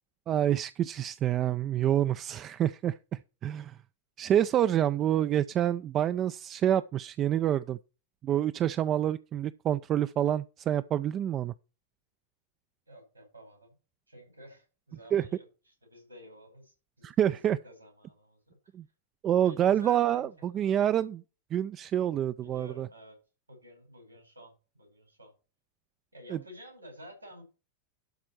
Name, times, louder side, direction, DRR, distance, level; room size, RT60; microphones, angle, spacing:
voice 1, 0.3-3.8 4.2-7.8 8.2-11.5 15.1-15.3 17.0-17.6 18.7-18.8 19.2-21.2 21.5-22.9 26.3-26.4, right 10 dB, 30° right, 0.4 m, -27 dB
voice 2, 12.9-13.7 14.1-17.1 17.5-18.4 19.4-20.9 22.4-23.2 23.5-25.3 26.1-27.4, equal, 85° right, 5.4 m, -51 dB
12.0 x 4.2 x 6.0 m
figure-of-eight pair, 90°, 0 cm